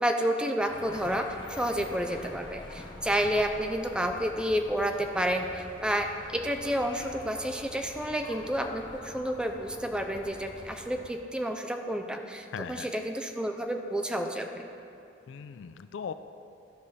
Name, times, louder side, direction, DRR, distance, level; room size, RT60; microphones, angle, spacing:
voice 1, 0.0-14.7, equal, 5° right, 5 dB, 0.4 m, -30 dB
sound 1, 0.7-11.1, left 2 dB, 25° left, 0.7 m, -46 dB
voice 2, 12.5-12.9 15.3-16.1, left 6 dB, 80° left, 11 dB, 0.3 m, -39 dB
12.5 x 5.5 x 3.3 m, 2.6 s
head